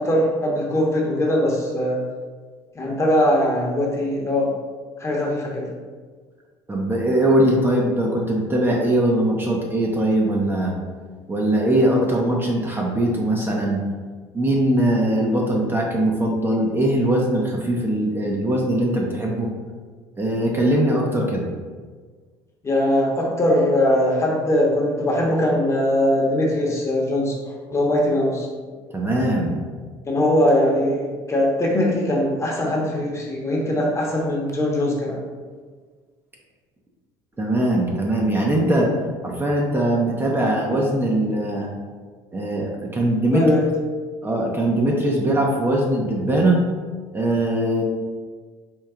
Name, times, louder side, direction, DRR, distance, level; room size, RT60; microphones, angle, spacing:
voice 1, 0.0-2.0 2.7-4.5 5.0-5.7 22.6-27.3 27.7-28.5 30.0-35.2 43.3-43.6, left 1 dB, 25° left, -2 dB, 1.0 m, -21 dB
voice 2, 6.7-10.7 11.3-13.8 14.3-19.5 20.2-21.5 28.9-29.6 37.4-38.9 39.2-41.7 42.3-43.5 44.2-46.6 47.1-47.8, right 1 dB, 20° right, -2 dB, 0.6 m, -21 dB
4.5 x 2.3 x 3.6 m, 1.5 s
supercardioid pair, 85°, 12 cm